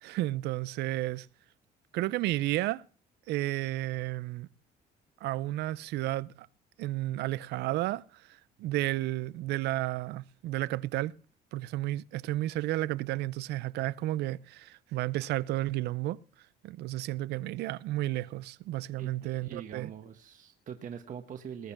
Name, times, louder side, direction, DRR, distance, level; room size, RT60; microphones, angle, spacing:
voice 1, 0.0-1.3 1.9-2.8 3.3-4.5 5.2-6.5 6.8-8.2 8.6-11.1 11.5-16.2 16.6-19.9, right 16 dB, 80° right, 0.6 m, -32 dB
voice 2, 19.0-21.7, right 8 dB, 50° right, 1.1 m, -43 dB
20.0 x 6.7 x 6.0 m
cardioid pair, 110°, 17 cm